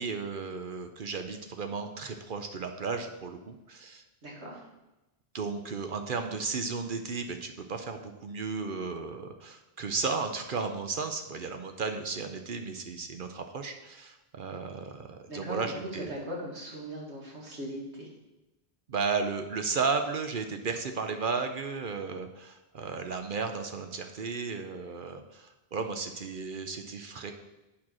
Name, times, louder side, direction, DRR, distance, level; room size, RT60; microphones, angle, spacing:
voice 1, 0.0-4.0 5.3-16.1 18.9-27.3, right 4 dB, 55° right, 6 dB, 0.8 m, -34 dB
voice 2, 4.2-4.7 15.3-18.1, equal, 85° right, -2 dB, 2.2 m, -39 dB
8.6 x 4.5 x 6.2 m, 1.0 s
omnidirectional pair, 1.1 m